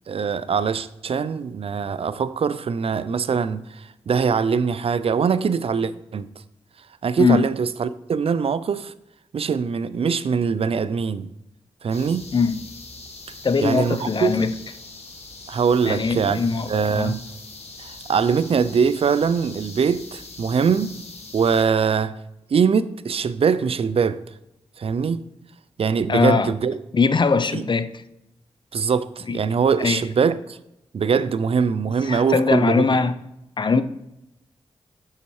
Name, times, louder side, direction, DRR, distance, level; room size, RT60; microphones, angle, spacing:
voice 1, 0.1-6.3 7.0-8.9 9.3-11.3 11.8-12.2 13.6-14.3 15.5-17.2 17.8-20.9 21.3-22.2 22.5-24.2 24.8-25.3 25.8-26.8 27.5-27.6 28.7-30.6 30.9-32.9, right 6 dB, 55° right, 0.4 m, -22 dB
sound 1, 11.9-21.6, left 3 dB, 60° left, 1.4 m, -42 dB
voice 2, 13.4-14.5 15.8-17.1 26.1-26.5 26.9-27.9 29.3-29.4 29.8-30.0 32.1-33.1 33.6-33.8, left 4 dB, 40° left, 0.5 m, -21 dB
6.9 x 5.6 x 3.1 m
cardioid pair, 45°, 12 cm